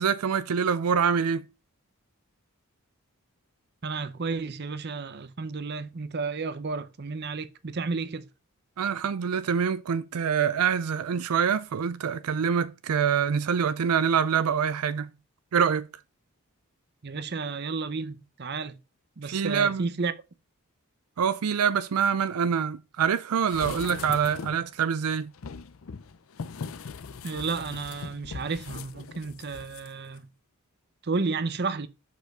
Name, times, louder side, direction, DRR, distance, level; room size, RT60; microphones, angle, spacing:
voice 1, 0.0-1.4 8.8-15.1 15.5-15.9 19.2-19.9 21.2-25.3, right 7 dB, 85° right, 0.4 m, -25 dB
voice 2, 3.8-8.2 17.0-18.7 19.2-20.1 27.2-30.3 31.0-31.9, right 4 dB, 50° right, 0.7 m, -32 dB
sound 1, 23.4-24.7 25.3-29.9 30.2-30.3, left 5 dB, 65° left, 0.5 m, -40 dB
6.7 x 5.0 x 4.7 m
head